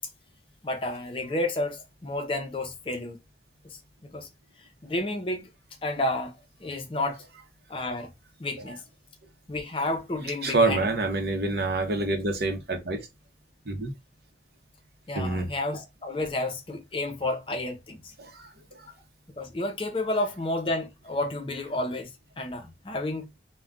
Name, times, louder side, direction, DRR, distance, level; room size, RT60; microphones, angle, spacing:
voice 1, 0.6-3.2 3.6-4.3 4.8-5.5 5.8-7.2 7.7-8.1 8.4-8.8 9.5-10.8 15.1-18.1 19.4-22.1 22.4-23.3, left 2 dB, 30° left, 0.5 m, -31 dB
voice 2, 10.4-13.1 13.7-13.9 15.1-15.5 18.2-18.5 18.8-18.9, right 2 dB, 65° right, 0.7 m, -27 dB
2.3 x 2.2 x 3.6 m
head